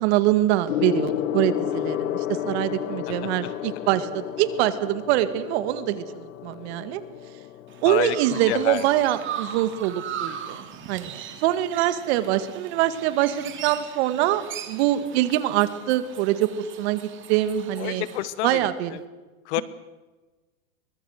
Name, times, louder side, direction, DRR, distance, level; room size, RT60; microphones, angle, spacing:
voice 1, 0.0-7.0 7.8-18.0 18.4-19.0, right 13 dB, 50° right, 12 dB, 2.0 m, -24 dB
Gong, 0.7-10.4 11.4-11.6, left 12 dB, 80° left, 1.4 m, -32 dB
Chirp tweet, 7.7-18.3, right 9 dB, 30° right, 2.8 m, -39 dB
voice 2, 7.8-8.8 17.8-18.6 19.5-19.6, left 16 dB, 55° left, 17 dB, 1.4 m, -28 dB
23.5 x 21.5 x 6.5 m, 1.2 s
supercardioid pair, 135°, 40 cm